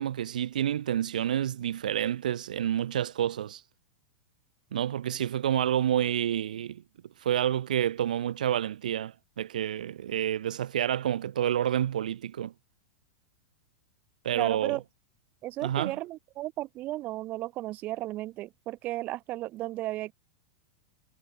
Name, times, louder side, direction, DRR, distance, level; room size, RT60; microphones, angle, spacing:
voice 1, 0.0-3.6 4.7-6.8 7.2-12.5 14.2-14.8 15.6-15.9, right 10 dB, 80° right, 0.9 m, -29 dB
voice 2, 14.3-14.8 15.4-20.1, right 16 dB, 40° right, 2.3 m, -34 dB
hypercardioid pair, 115°, 4 cm